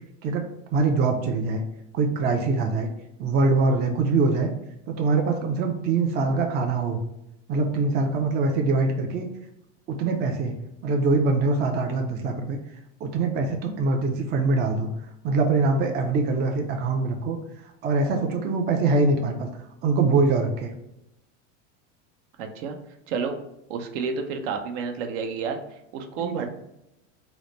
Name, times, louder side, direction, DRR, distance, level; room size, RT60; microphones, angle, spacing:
voice 1, 0.2-1.6 1.9-2.9 3.2-4.5 4.9-7.0 7.5-9.3 9.9-10.5 10.8-12.6 13.0-14.9 15.2-17.4 17.8-19.5 19.8-20.7 26.2-26.5, right 3 dB, 30° right, 3 dB, 0.4 m, -23 dB
voice 2, 22.4-22.8 23.1-23.4 23.7-26.5, right 5 dB, 70° right, 5 dB, 0.7 m, -30 dB
3.9 x 2.1 x 3.0 m, 0.84 s
supercardioid pair, 125°, 38 cm